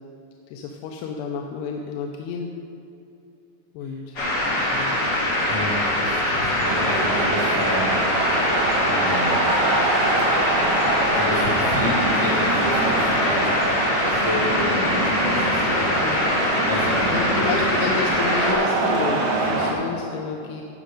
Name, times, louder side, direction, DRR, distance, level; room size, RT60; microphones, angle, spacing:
voice 1, 0.5-2.5 3.7-4.2 4.7-5.0 16.0-16.3 17.1-20.6, left 5 dB, 80° left, 2 dB, 2.6 m, -30 dB
sound 1, 4.2-18.5, left 1 dB, 40° left, 2.5 m, -23 dB
voice 2, 5.5-7.9 8.8-9.4 10.9-13.6 14.0-16.1 16.7-17.3, left 1 dB, 55° left, -7 dB, 1.3 m, -30 dB
sound 2, 6.6-19.7, right 2 dB, 65° right, 3.3 m, -25 dB
18.0 x 6.3 x 5.1 m, 2.7 s
omnidirectional pair, 5.1 m